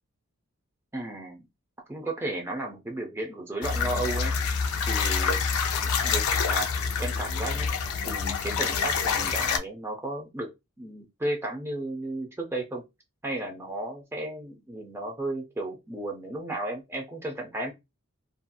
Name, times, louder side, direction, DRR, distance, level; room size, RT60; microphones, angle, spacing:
voice 1, 0.9-1.4 1.9-4.3 4.8-5.4 6.0-6.7 7.0-7.7 8.1-10.5 10.8-12.8 13.2-17.7, right 1 dB, 10° right, 1 dB, 0.4 m, -34 dB
sound 1, 3.6-9.6, left 5 dB, 80° left, 0.4 m, -27 dB
2.7 x 2.5 x 2.2 m, 0.22 s
head